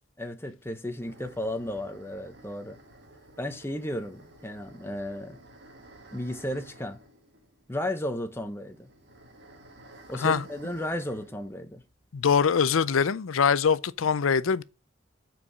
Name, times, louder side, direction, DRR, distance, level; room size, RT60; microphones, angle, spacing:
voice 1, 0.2-2.8 3.4-5.4 6.1-7.0 7.7-8.9 10.1-11.8, left 1 dB, 10° left, 0.9 m, -34 dB
sound 1, 1.0-12.4 12.7-12.8 13.3-14.1, right 1 dB, 55° right, 1.6 m, -53 dB
voice 2, 12.1-14.6, left 6 dB, 90° left, 0.5 m, -23 dB
6.0 x 4.7 x 6.5 m
head